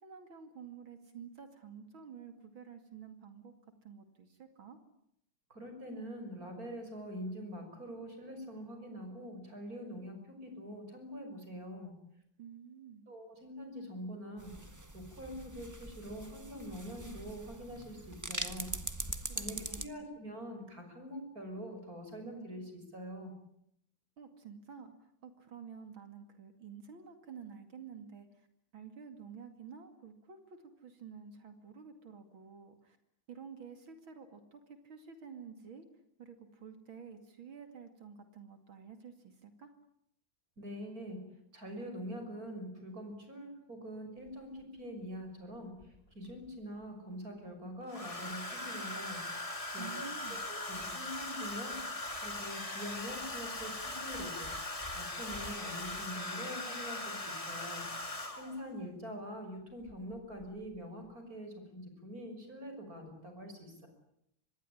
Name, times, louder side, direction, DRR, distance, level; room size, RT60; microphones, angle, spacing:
voice 1, 0.0-3.5 3.8-4.8 12.4-13.1 19.3-19.9 24.2-28.5 28.7-33.0 33.3-35.9 36.2-39.7 49.8-50.4, right 6 dB, 70° right, 8 dB, 3.2 m, -50 dB
voice 2, 5.5-12.0 13.1-18.8 19.3-23.4 40.6-41.3 41.5-49.2 49.7-51.8 52.2-54.5 54.9-57.9 58.3-63.9, equal, 40° right, 5 dB, 6.6 m, -44 dB
sound 1, 14.4-19.9, right 1 dB, 10° right, 1.2 m, -42 dB
Domestic sounds home sounds, 44.3-44.4 45.8-46.5 47.9-58.7 59.9-60.1 60.4-60.8, left 2 dB, 15° left, 2.3 m, -40 dB
26.0 x 20.5 x 10.0 m, 0.75 s
omnidirectional pair, 2.3 m